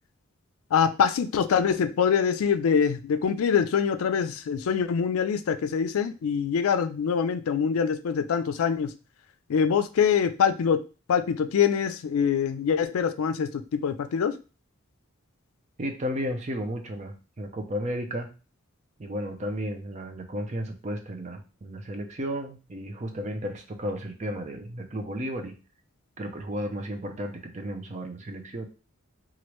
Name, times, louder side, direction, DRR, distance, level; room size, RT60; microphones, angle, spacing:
voice 1, 0.7-8.9 9.5-10.8 11.1-14.3, left 7 dB, 80° left, 10 dB, 0.4 m, -24 dB
voice 2, 15.8-18.3 19.0-25.6 26.2-28.7, equal, 35° right, 5 dB, 0.5 m, -33 dB
3.1 x 2.5 x 2.9 m, 0.33 s
head